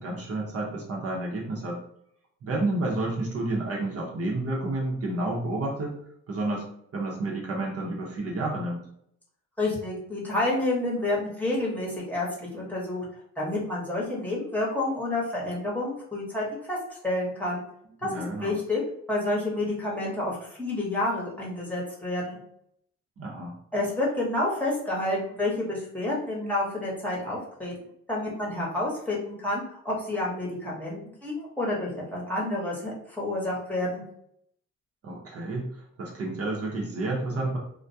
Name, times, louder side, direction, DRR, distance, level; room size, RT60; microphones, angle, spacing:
voice 1, 0.0-1.8 2.4-6.0 6.3-6.7 6.9-8.8 18.0-18.6 23.2-23.5 35.0-35.7 36.0-37.6, right 2 dB, 50° right, -2 dB, 0.7 m, -30 dB
voice 2, 9.6-13.0 13.4-17.6 18.0-18.8 19.1-22.4 23.7-27.7 28.1-34.0, left 2 dB, 5° left, -5 dB, 0.9 m, -29 dB
2.3 x 2.1 x 2.7 m, 0.71 s
cardioid pair, 90°, 30 cm